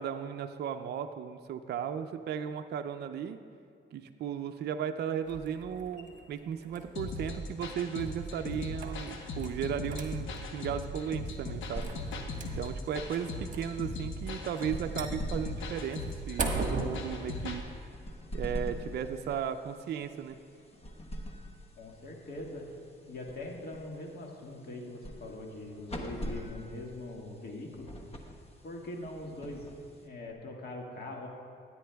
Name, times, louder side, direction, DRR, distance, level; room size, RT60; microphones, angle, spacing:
voice 1, 0.0-3.4 3.9-11.9 12.4-16.0 16.3-17.6 18.3-20.4, right 8 dB, 55° right, 7 dB, 0.4 m, -35 dB
sound 1, 5.2-16.9, right 4 dB, 40° right, 1.3 m, -42 dB
sound 2, 6.9-17.6, left 2 dB, 80° left, 1.0 m, -39 dB
sound 3, 11.4-30.3, equal, 30° left, 1.1 m, -44 dB
voice 2, 21.8-22.6 23.1-27.9 28.6-29.7 30.0-31.3, left 2 dB, 50° left, 0 dB, 1.7 m, -42 dB
15.5 x 9.4 x 2.3 m, 2.3 s
cardioid pair, 90°, 20 cm